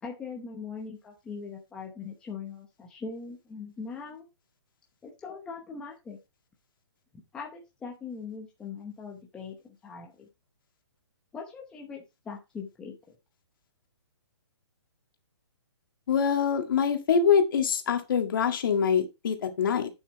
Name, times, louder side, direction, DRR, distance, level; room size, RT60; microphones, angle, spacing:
voice 1, 0.0-4.3 5.0-6.2 7.3-10.3 11.3-13.0, left 5 dB, 5° left, -1 dB, 0.8 m, -41 dB
voice 2, 16.1-19.9, left 7 dB, 50° left, 5 dB, 1.9 m, -24 dB
9.1 x 7.1 x 3.1 m, 0.25 s
hypercardioid pair, 175°, 14 cm